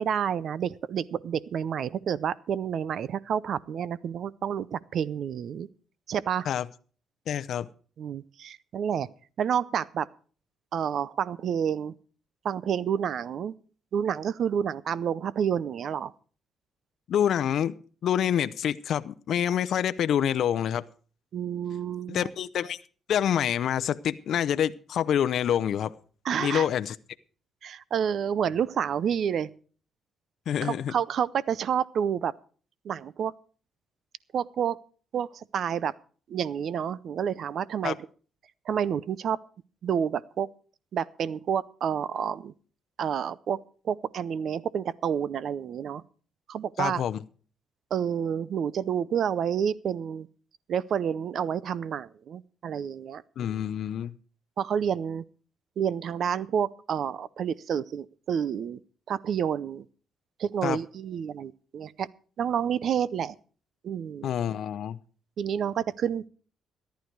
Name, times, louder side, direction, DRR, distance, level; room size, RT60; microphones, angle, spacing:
voice 1, 0.0-5.7 6.1-6.5 8.0-9.1 9.4-10.1 10.7-11.9 12.4-13.5 13.9-16.1 21.3-22.3 26.2-26.7 27.6-29.5 30.6-32.3 32.8-33.3 34.3-34.8 35.1-35.9 36.3-38.0 38.7-39.4 39.8-40.5 40.9-42.5 43.0-43.6 43.8-46.0 46.5-47.0 47.9-50.3 50.7-53.2 54.6-55.2 55.8-58.8 59.1-59.8 60.4-62.1 62.4-63.3 63.8-64.3 65.4-66.3, right 8 dB, 65° right, 19 dB, 0.6 m, -29 dB
voice 2, 7.3-7.7 17.1-17.7 18.0-20.9 22.1-22.8 23.1-25.9 26.4-27.0 30.5-30.9 37.8-37.9 46.8-47.2 53.4-54.1 60.6-60.8 64.2-65.0, left 9 dB, 70° left, 13 dB, 0.6 m, -27 dB
14.0 x 11.5 x 4.6 m, 0.41 s
cardioid pair, 90°, 0 cm